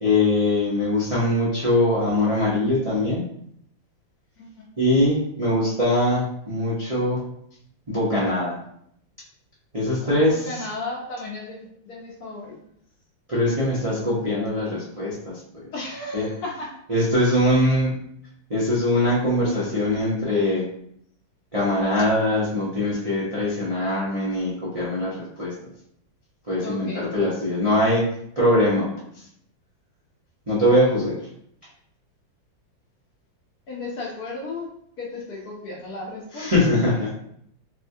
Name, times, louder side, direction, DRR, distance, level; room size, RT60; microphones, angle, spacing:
voice 1, 0.0-3.3 4.8-7.2 7.9-8.6 9.7-10.5 13.3-15.4 16.1-16.3 16.9-17.9 18.5-20.7 21.5-25.5 26.5-28.9 30.5-31.2 36.4-37.1, left 1 dB, 55° right, -9 dB, 0.4 m, -22 dB
voice 2, 10.0-12.6 15.7-16.7 26.6-27.1 33.7-34.7 35.0-36.5 36.9-37.1, left 2 dB, 65° left, -3 dB, 1.1 m, -34 dB
4.1 x 2.2 x 2.7 m, 0.70 s
omnidirectional pair, 2.1 m